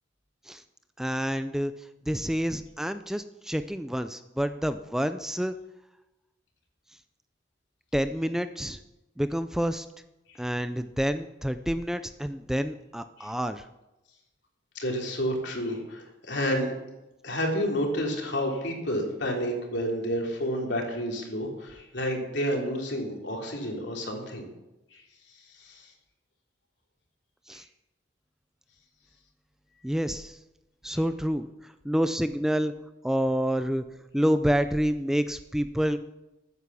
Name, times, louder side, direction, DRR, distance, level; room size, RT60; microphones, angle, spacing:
voice 1, 1.0-1.7 2.1-5.5 7.9-8.8 9.2-9.9 10.4-13.7 27.5-27.6 29.8-30.4 30.8-32.7 33.0-33.8 34.1-36.0, equal, ahead, 10 dB, 0.4 m, -28 dB
voice 2, 14.7-16.7 17.2-24.4 24.9-25.0 25.5-25.9 27.5-27.6, equal, 70° left, 0 dB, 3.3 m, -30 dB
14.0 x 9.5 x 6.8 m, 0.99 s
head